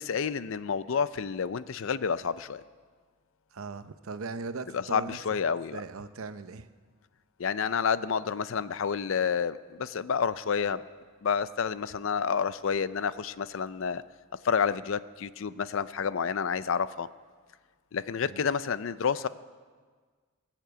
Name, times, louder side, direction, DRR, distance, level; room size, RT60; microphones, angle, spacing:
voice 1, 0.0-2.6 4.7-5.8 7.4-10.8 11.2-14.0 14.4-17.1 17.9-19.3, left 6 dB, 65° left, 15 dB, 0.5 m, -29 dB
voice 2, 3.5-5.2 5.7-6.7 18.2-18.5, right 4 dB, 80° right, 12 dB, 0.7 m, -39 dB
20.0 x 7.5 x 8.0 m, 1.5 s
head